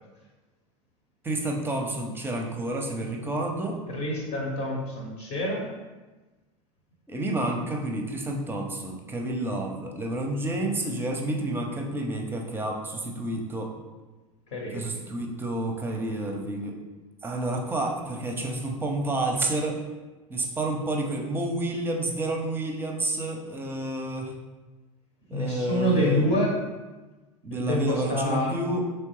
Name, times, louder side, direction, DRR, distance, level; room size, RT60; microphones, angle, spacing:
voice 1, 1.2-3.8 7.1-13.7 14.7-16.7 17.2-19.8 20.3-24.3 25.3-26.3 27.4-28.8, right 1 dB, 10° right, 1 dB, 0.6 m, -29 dB
voice 2, 3.9-5.7 14.5-14.8 25.3-26.6 27.5-28.5, left 1 dB, 45° left, -1 dB, 0.8 m, -27 dB
3.6 x 3.2 x 3.1 m, 1.2 s
figure-of-eight pair, 80°, 17 cm